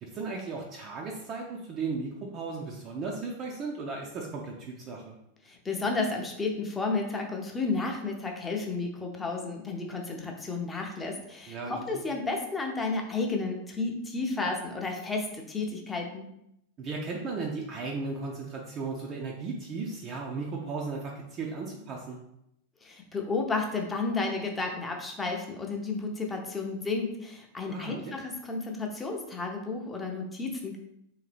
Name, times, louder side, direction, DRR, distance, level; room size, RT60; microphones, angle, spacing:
voice 1, 0.0-5.1 11.5-12.0 16.8-22.2 27.7-28.1, right 4 dB, 30° right, -1 dB, 0.5 m, -36 dB
voice 2, 5.4-16.2 22.8-30.8, left 3 dB, 15° left, 1 dB, 0.7 m, -32 dB
3.5 x 2.8 x 3.3 m, 0.79 s
figure-of-eight pair, 90°, 0 cm